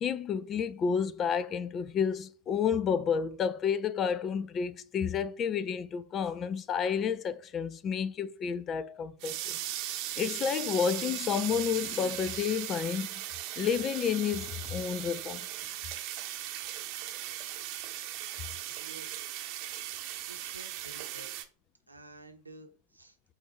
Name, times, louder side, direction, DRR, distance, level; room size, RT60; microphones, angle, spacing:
voice 1, 0.0-9.6 10.2-13.2 13.6-15.5, left 7 dB, 30° left, 0.5 m, -30 dB
sound 1, 9.2-21.4, right 13 dB, 40° right, 0.8 m, -38 dB
voice 2, 18.7-19.2 20.3-21.3 21.9-23.2, right 2 dB, 85° right, 0.9 m, -51 dB
8.0 x 2.7 x 4.5 m
figure-of-eight pair, 90°, 0 cm